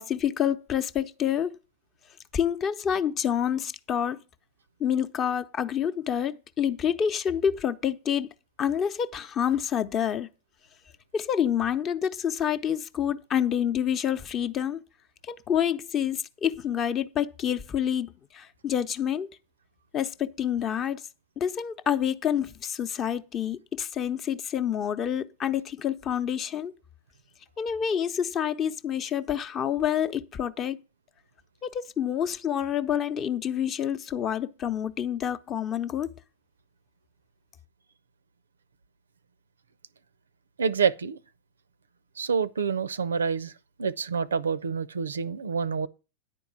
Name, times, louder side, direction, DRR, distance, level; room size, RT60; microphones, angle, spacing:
voice 1, 0.0-1.6 2.3-4.2 4.8-8.3 8.6-10.3 11.1-14.8 15.3-19.3 19.9-21.0 21.4-26.7 27.6-30.8 31.6-36.1, left 9 dB, 30° left, 0.7 m, -28 dB
voice 2, 40.6-41.2 42.2-43.5 43.8-45.9, right 6 dB, 75° right, 0.5 m, -27 dB
10.0 x 4.6 x 7.3 m
figure-of-eight pair, 90°, 0 cm